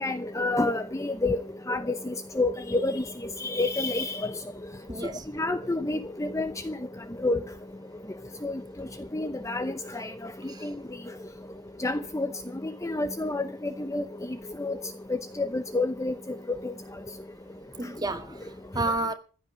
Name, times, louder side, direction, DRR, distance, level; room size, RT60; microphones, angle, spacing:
voice 1, 0.0-1.4 1.7-1.8 2.4-3.0 3.4-4.2 5.4-6.7 7.2-7.4 8.4-8.5 9.1-10.1 10.6-10.7 11.8-12.3 12.8-13.5 13.9-14.0 14.6-14.7 15.4-16.1 16.6-16.7, left 2 dB, 15° left, 0.7 m, -28 dB
voice 2, 4.9-5.3 10.5-10.7 17.8-19.1, right 2 dB, 20° right, 1.7 m, -31 dB
15.0 x 10.5 x 6.3 m
head